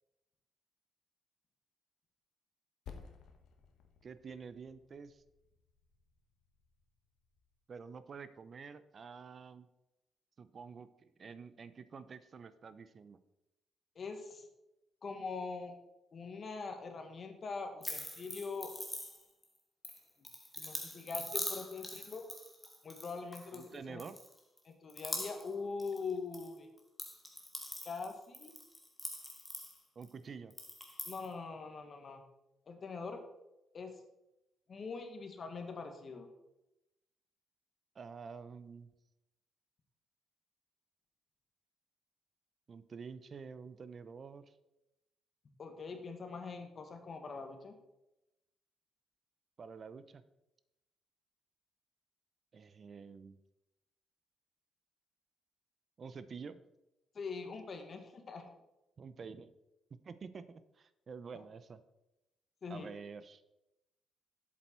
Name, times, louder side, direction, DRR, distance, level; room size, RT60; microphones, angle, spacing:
Percussion, 2.9-7.7, left 6 dB, 75° left, 1.2 m, -57 dB
voice 1, 4.0-5.2 7.7-9.7 10.4-13.2 23.5-24.2 30.0-30.5 37.9-38.9 42.7-44.5 49.6-50.2 52.5-53.4 56.0-56.6 59.0-59.5 60.0-60.4 60.8-61.8 62.7-63.4, right 5 dB, 45° right, 13 dB, 0.7 m, -48 dB
voice 2, 13.9-14.5 15.0-15.7 16.1-18.7 20.6-22.2 22.8-24.0 24.6-26.7 27.8-28.5 31.0-32.2 32.7-33.2 33.7-34.0 34.7-36.3 45.6-47.7 57.1-58.5 62.6-62.9, left 4 dB, 45° left, 5 dB, 1.7 m, -43 dB
sound 1, 17.8-19.4 19.8-23.7 24.0-24.6 24.9-25.5 25.8-26.5 26.8-30.1 30.5-31.3, left 1 dB, 5° left, 2.0 m, -43 dB
7.9 x 7.7 x 4.5 m, 0.91 s
cardioid pair, 90°, 0 cm